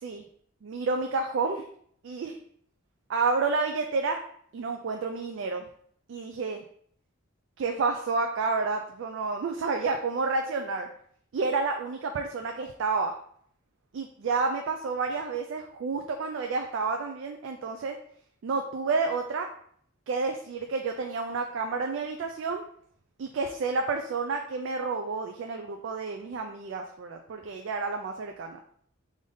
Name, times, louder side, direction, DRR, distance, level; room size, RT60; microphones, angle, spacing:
voice 1, 0.6-1.7 2.0-2.4 3.1-4.2 4.5-5.7 6.1-6.6 7.6-10.9 11.3-13.1 13.9-18.0 18.4-19.5 20.1-22.6 23.2-28.6, right 4 dB, 65° right, 3 dB, 0.3 m, -30 dB
3.8 x 2.6 x 3.4 m, 0.63 s
head